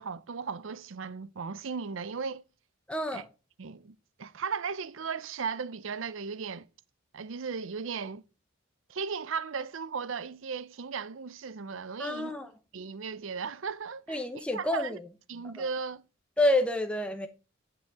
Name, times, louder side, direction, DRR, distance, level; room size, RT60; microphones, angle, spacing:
voice 1, 0.0-2.4 3.1-3.2 3.6-3.9 4.2-6.7 7.1-8.2 8.9-12.3 12.7-15.0 15.3-16.0, right 5 dB, 65° right, 0.6 m, -36 dB
voice 2, 2.9-3.2 12.0-12.5 14.1-15.1 16.4-17.3, left 1 dB, 5° left, 0.7 m, -28 dB
9.5 x 6.9 x 3.5 m
head